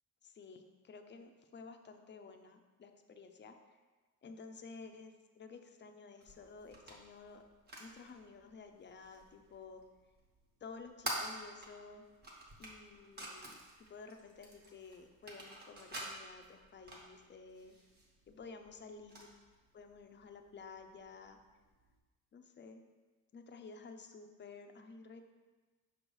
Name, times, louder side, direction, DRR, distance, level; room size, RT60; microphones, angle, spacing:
voice 1, 0.2-3.8 4.2-7.4 7.8-9.8 10.6-12.0 12.6-13.6 13.9-17.8 18.3-19.3 19.7-21.4 22.3-22.8 23.3-25.2, left 4 dB, 30° left, 6 dB, 0.4 m, -53 dB
sound 1, 6.2-22.0, right 1 dB, 25° right, 1.0 m, -50 dB
6.2 x 3.1 x 5.2 m, 1.3 s
cardioid pair, 160°, 36 cm